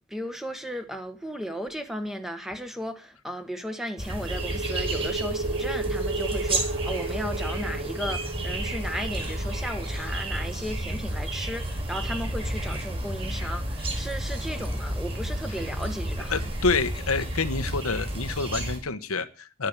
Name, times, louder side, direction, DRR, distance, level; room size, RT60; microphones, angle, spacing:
voice 1, 0.0-16.5, equal, ahead, 1.4 m, -35 dB
sound 1, 4.0-18.8, right 1 dB, 25° right, 4.9 m, -31 dB
sound 2, 4.2-11.7, right 3 dB, 70° right, 4.6 m, -33 dB
voice 2, 16.3-19.7, left 4 dB, 85° left, 1.2 m, -28 dB
11.5 x 10.5 x 8.2 m
head